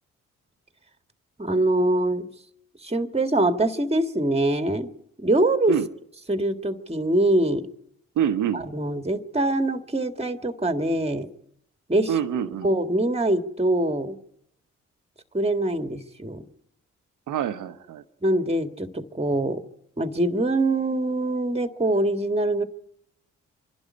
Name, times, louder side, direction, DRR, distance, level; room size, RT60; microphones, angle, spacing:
voice 1, 1.4-2.3 2.8-4.9 5.2-5.8 6.3-7.7 8.5-11.3 11.9-12.1 12.6-14.2 15.3-16.4 18.2-19.6 20.0-22.6, right 1 dB, 20° right, 8 dB, 1.9 m, -23 dB
voice 2, 8.2-8.6 12.1-12.7 17.3-18.0, right 9 dB, 75° right, 12 dB, 1.1 m, -25 dB
25.5 x 11.5 x 9.6 m, 0.76 s
supercardioid pair, 45°, 31 cm